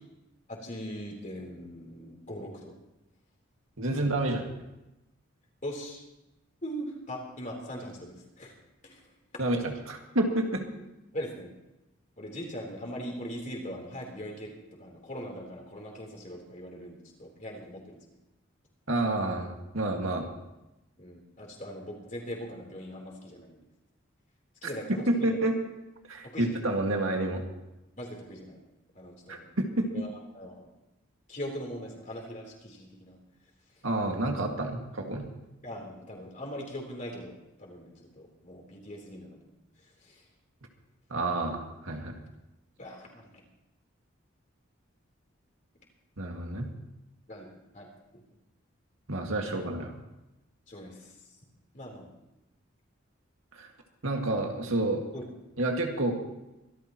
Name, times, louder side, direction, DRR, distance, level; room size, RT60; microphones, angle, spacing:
voice 1, 0.5-2.8 5.6-6.0 6.6-8.5 8.8-9.1 11.1-11.5 12.2-14.5 14.8-18.0 21.0-23.6 24.6-25.3 26.2-26.6 28.0-28.6 28.9-29.5 29.9-30.7 31.3-33.2 35.6-39.5 39.8-40.2 42.8-43.4 47.3-47.5 47.7-47.9 48.1-48.2 49.4-49.6 50.7-51.1 51.7-52.1 55.1-55.2, equal, 40° left, -1 dB, 3.7 m, -41 dB
voice 2, 3.8-4.5 9.4-10.7 18.9-20.3 25.1-25.5 26.1-27.4 29.3-29.9 33.8-35.3 41.1-42.1 46.2-46.7 49.1-49.9 53.5-53.7 54.0-55.0 55.6-56.1, right 2 dB, 85° right, 2 dB, 2.1 m, -29 dB
24.5 x 13.0 x 3.1 m, 0.97 s
head